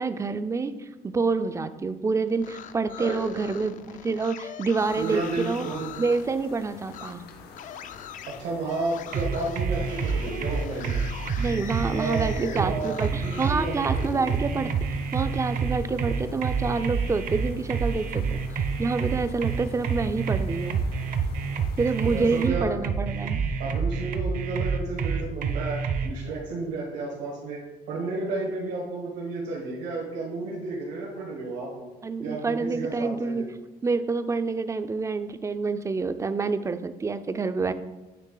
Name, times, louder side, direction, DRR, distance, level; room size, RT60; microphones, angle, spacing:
voice 1, 0.0-5.7 6.0-7.3 11.4-14.7 15.1-20.8 21.8-23.4 32.0-33.4 33.8-37.7, right 4 dB, 20° right, 11 dB, 0.3 m, -27 dB
sound 1, 2.3-6.3 6.9-7.1 7.5-13.6 13.9-15.6, left 9 dB, 50° left, 0.4 m, -42 dB
voice 2, 3.0-3.5 5.0-5.9 8.3-11.0 11.9-14.3 22.0-22.7 23.6-27.6 27.9-31.8 32.2-33.5, right 3 dB, 85° right, -5 dB, 1.6 m, -32 dB
sound 2, 4.8-22.5, left 5 dB, 70° left, 0.7 m, -48 dB
sound 3, 9.1-26.1, right 5 dB, 55° right, 0.7 m, -28 dB
9.1 x 3.2 x 3.8 m, 1.1 s
cardioid pair, 110°, 17 cm